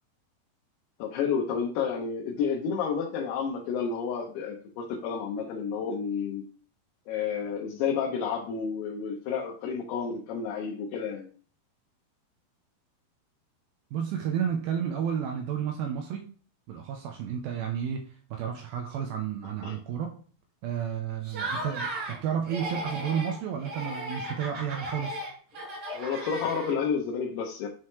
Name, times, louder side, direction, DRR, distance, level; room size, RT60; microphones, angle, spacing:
voice 1, 1.0-6.4 7.1-11.3 19.6-19.8 25.9-27.7, left 6 dB, 80° left, -1 dB, 2.9 m, -30 dB
voice 2, 13.9-16.2 16.7-18.0 18.3-20.1 20.6-25.2, right 8 dB, 80° right, 3 dB, 2.3 m, -31 dB
Laughter, 21.2-22.2 22.5-23.3 23.6-27.0, right 1 dB, 45° right, 4.6 m, -36 dB
9.3 x 4.8 x 3.2 m, 0.43 s
omnidirectional pair, 4.7 m